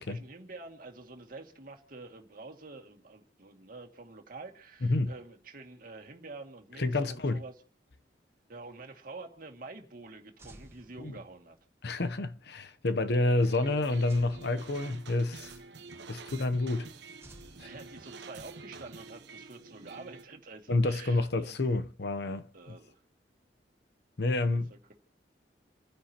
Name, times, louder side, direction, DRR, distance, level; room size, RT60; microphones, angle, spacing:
voice 1, 0.0-7.5 8.5-11.6 17.6-21.5 22.5-23.0 24.5-24.9, right 3 dB, 50° right, 2.2 m, -47 dB
voice 2, 4.8-5.1 6.8-7.4 11.0-11.1 11.8-15.6 16.1-16.9 17.6-17.7 20.7-22.8 24.2-24.7, left 2 dB, 60° left, 0.8 m, -29 dB
sound 1, 10.4-11.7 14.1-15.4 17.2-18.5, right 1 dB, 15° right, 1.4 m, -55 dB
sound 2, 13.4-20.2, right 3 dB, 70° right, 1.1 m, -48 dB
29.5 x 10.0 x 2.9 m
head